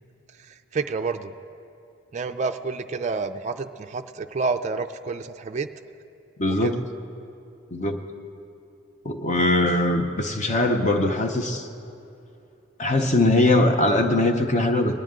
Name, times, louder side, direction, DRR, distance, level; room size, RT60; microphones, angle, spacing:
voice 1, 0.4-1.3 2.1-5.7 6.6-6.8, right 4 dB, 35° right, 7 dB, 0.3 m, -29 dB
voice 2, 6.4-6.8 7.7-8.0 9.0-11.7 12.8-14.9, left 2 dB, 35° left, 5 dB, 0.7 m, -21 dB
20.0 x 9.0 x 3.7 m, 2.6 s
head